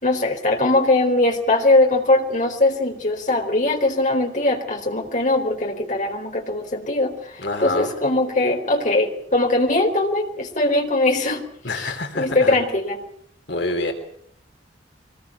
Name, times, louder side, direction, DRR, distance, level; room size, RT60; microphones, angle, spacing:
voice 1, 0.0-11.4 11.8-13.0, left 2 dB, 40° left, 2 dB, 4.2 m, -21 dB
voice 2, 7.4-7.9 11.6-12.5 13.5-13.9, left 2 dB, 70° left, 4 dB, 3.2 m, -26 dB
24.5 x 20.5 x 7.0 m, 0.69 s
head